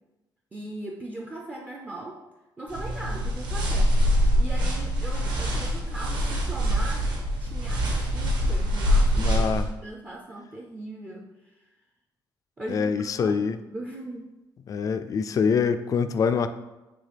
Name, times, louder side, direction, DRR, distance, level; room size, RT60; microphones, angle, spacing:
voice 1, 0.5-2.2 2.6-4.0 4.4-11.7 12.6-12.9 13.2-14.3, right 1 dB, 20° right, 0 dB, 0.5 m, -39 dB
sound 1, 2.7-9.7, equal, 60° right, 1.6 m, -24 dB
voice 2, 9.2-9.7 12.7-13.6 14.7-16.5, left 6 dB, 40° left, 10 dB, 0.3 m, -25 dB
8.8 x 3.4 x 3.4 m, 1.1 s
cardioid pair, 140°, 9 cm